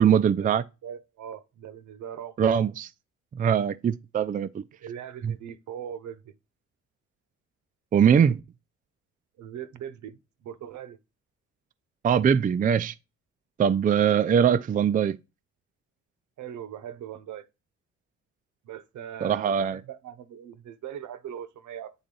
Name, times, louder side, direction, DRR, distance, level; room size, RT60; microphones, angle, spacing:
voice 1, 0.0-0.6 2.4-2.9 3.3-4.6 5.2-5.3 7.9-8.4 12.0-12.9 13.6-15.2 19.2-19.8, right 8 dB, 30° right, 0.4 m, -22 dB
voice 2, 0.8-2.4 4.8-6.3 9.4-11.0 16.4-17.5 18.6-21.9, right 9 dB, 70° right, 0.9 m, -40 dB
8.8 x 3.8 x 3.8 m
cardioid pair, 90°, 30 cm